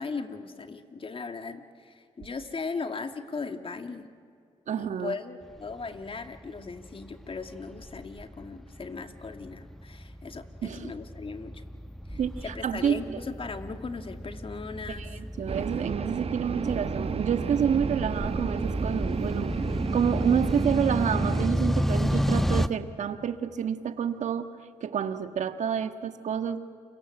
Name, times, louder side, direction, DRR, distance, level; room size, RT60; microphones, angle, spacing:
voice 1, 0.0-4.1 4.8-11.6 12.1-15.1, left 4 dB, 45° left, 7 dB, 2.4 m, -38 dB
voice 2, 4.7-5.1 10.6-10.9 12.1-13.2 14.9-24.5 24.8-26.6, right 8 dB, 70° right, 9 dB, 1.6 m, -29 dB
sound 1, 5.7-22.7, equal, ahead, 1.2 m, -32 dB
sound 2, 15.5-21.5, right 6 dB, 55° right, 1.0 m, -32 dB
29.5 x 23.5 x 7.9 m, 2.3 s
supercardioid pair, 50°, 13 cm